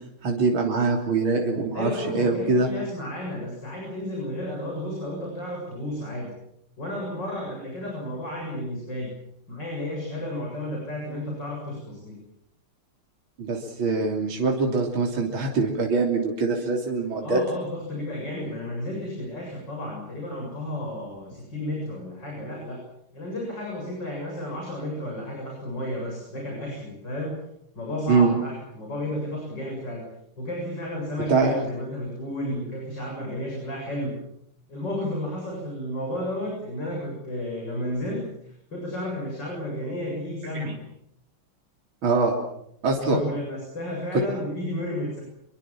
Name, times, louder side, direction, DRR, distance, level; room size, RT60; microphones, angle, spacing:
voice 1, 0.2-2.7 13.4-17.4 28.1-28.3 31.3-31.5 40.6-40.7 42.0-42.3 42.8-43.2, right 3 dB, 70° right, 0 dB, 4.0 m, -23 dB
voice 2, 1.7-6.3 6.8-9.1 9.5-12.2 17.2-22.8 23.1-27.4 27.7-30.0 30.4-34.1 34.7-40.7 43.1-45.2, left 1 dB, 55° left, -1 dB, 8.3 m, -32 dB
27.5 x 23.0 x 7.4 m, 0.76 s
omnidirectional pair, 2.3 m